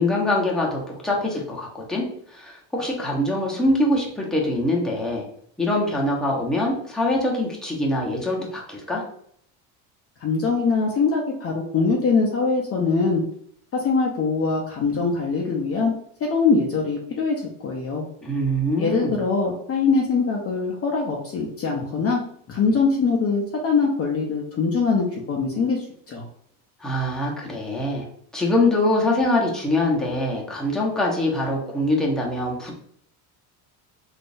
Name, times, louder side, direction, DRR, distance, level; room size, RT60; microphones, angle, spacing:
voice 1, 0.0-5.3 5.6-9.0 18.2-19.2 26.8-28.1 28.3-32.7, left 1 dB, ahead, -3 dB, 0.8 m, -23 dB
voice 2, 10.2-13.2 13.7-15.9 16.3-18.0 18.8-22.2 22.5-26.2, left 4 dB, 30° left, -1 dB, 0.6 m, -22 dB
3.7 x 2.6 x 2.5 m, 0.65 s
supercardioid pair, 110°, 45 cm